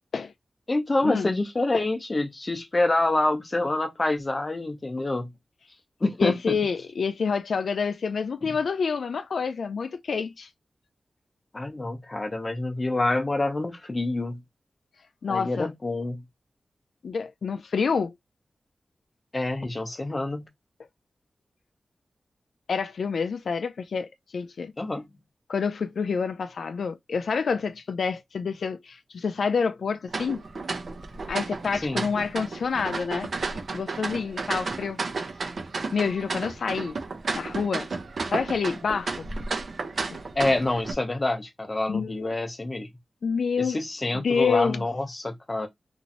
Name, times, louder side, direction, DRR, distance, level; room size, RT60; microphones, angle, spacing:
voice 1, 0.7-5.3 6.0-6.6 8.4-8.6 11.5-14.4 15.3-16.2 19.3-20.5 24.8-25.0 31.8-32.1 40.4-42.9 43.6-45.7, left 2 dB, 30° left, 0.6 m, -27 dB
voice 2, 6.2-10.5 15.2-15.7 17.0-18.1 22.7-24.7 25.5-30.4 31.3-33.3 33.7-35.0 35.9-37.0 37.3-37.9 38.3-39.2 41.9-42.1 43.2-43.8 44.1-44.8, left 5 dB, 85° left, 0.3 m, -28 dB
sound 1, 30.1-40.9, right 3 dB, 65° right, 0.6 m, -33 dB
3.0 x 2.6 x 2.6 m
wide cardioid pair, 125°, 0 cm